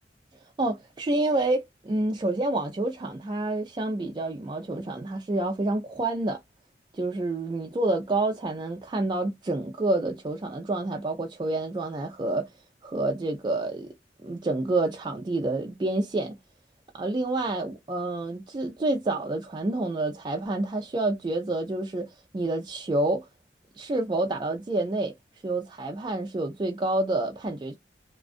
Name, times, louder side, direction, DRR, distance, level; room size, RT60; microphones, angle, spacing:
voice 1, 0.6-6.4 6.9-12.5 12.8-13.9 14.2-16.4 16.9-23.3 23.8-25.1 25.4-27.7, right 2 dB, 25° right, 0.3 m, -28 dB
2.4 x 2.2 x 2.4 m
head